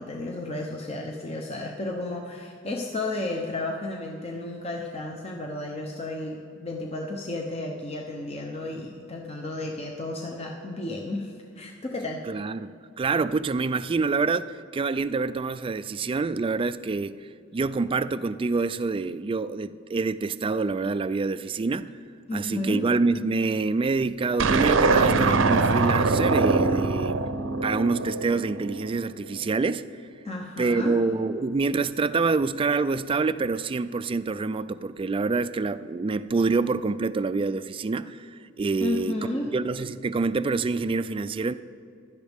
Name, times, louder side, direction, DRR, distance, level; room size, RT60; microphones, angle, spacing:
voice 1, 0.0-12.2 22.3-22.8 30.2-31.0 38.8-39.5, left 2 dB, 30° left, 0 dB, 0.8 m, -33 dB
voice 2, 12.3-17.2 17.5-21.9 22.3-27.3 27.6-29.9 30.6-38.3 38.6-39.1 39.5-41.5, right 4 dB, 25° right, 13 dB, 0.3 m, -26 dB
sound 1, 24.4-28.8, right 3 dB, 70° right, 0.7 m, -23 dB
16.5 x 11.5 x 3.5 m, 2.4 s
head